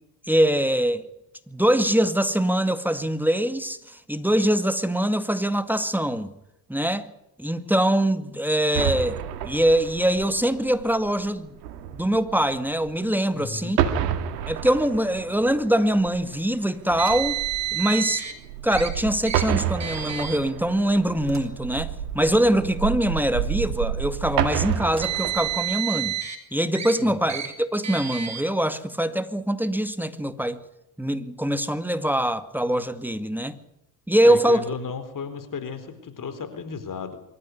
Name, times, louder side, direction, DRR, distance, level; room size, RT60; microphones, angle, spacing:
voice 1, 0.3-1.1 1.5-6.3 6.7-7.1 7.4-11.5 11.9-13.8 14.5-17.4 17.7-18.2 18.6-26.2 26.5-30.6 31.0-33.6 34.1-34.6, right 1 dB, 5° right, 2.1 m, -23 dB
sound 1, 8.7-13.4 13.7-25.6, right 10 dB, 85° right, 2.0 m, -30 dB
voice 2, 13.3-13.7 27.0-27.3 34.2-37.2, left 5 dB, 40° left, 4.3 m, -34 dB
Car, 17.0-18.3 18.7-18.9 19.3-19.4 19.8-20.4 21.2-21.4 22.3-22.4 24.7-26.4 26.8-26.9 27.3-27.5 27.8-28.4, right 11 dB, 35° right, 4.9 m, -29 dB
24.5 x 14.0 x 9.6 m
hypercardioid pair, 60°, 47 cm